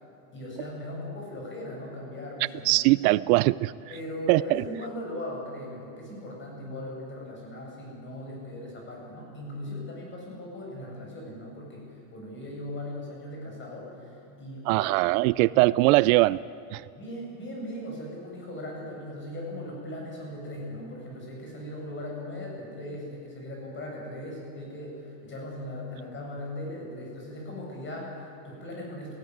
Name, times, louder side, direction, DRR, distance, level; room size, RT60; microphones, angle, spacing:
voice 1, 0.3-2.8 3.9-14.9 15.5-15.6 16.9-29.1, left 1 dB, 25° left, -1 dB, 7.0 m, -38 dB
voice 2, 2.7-3.7 4.3-4.6 14.7-16.4 16.7-16.8, right 20 dB, 70° right, 19 dB, 0.5 m, -21 dB
18.0 x 16.0 x 9.6 m, 2.7 s
supercardioid pair, 140°, 44 cm